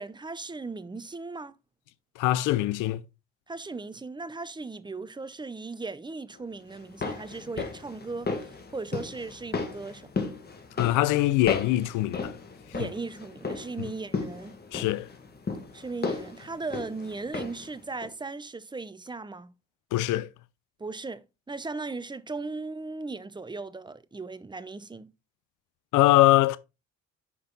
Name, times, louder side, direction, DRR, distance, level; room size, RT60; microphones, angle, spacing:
voice 1, 0.0-1.5 3.5-10.1 12.7-14.6 15.7-19.5 20.8-25.1, right 3 dB, 15° right, 0.6 m, -37 dB
voice 2, 2.2-3.0 10.8-12.4 13.8-13.9 14.7-15.1 19.9-20.3 25.9-26.6, left 16 dB, 85° left, 0.5 m, -23 dB
sound 1, 6.7-17.7 18.0-18.1, left 4 dB, 35° left, 1.7 m, -35 dB
6.2 x 5.2 x 3.8 m
cardioid pair, 90°, 30 cm